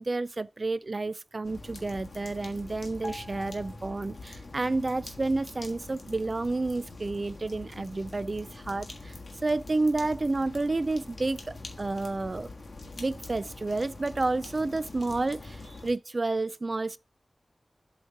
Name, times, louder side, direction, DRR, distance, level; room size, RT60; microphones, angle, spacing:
voice 1, 0.0-9.2 9.4-12.5 13.0-17.0, right 2 dB, 40° right, 0.3 m, -30 dB
sound 1, 1.4-15.9, left 2 dB, 55° left, 1.5 m, -44 dB
sound 2, 3.0-4.7 4.9-5.2, left 1 dB, 35° left, 0.5 m, -45 dB
7.8 x 3.2 x 5.6 m
wide cardioid pair, 100°, 0 cm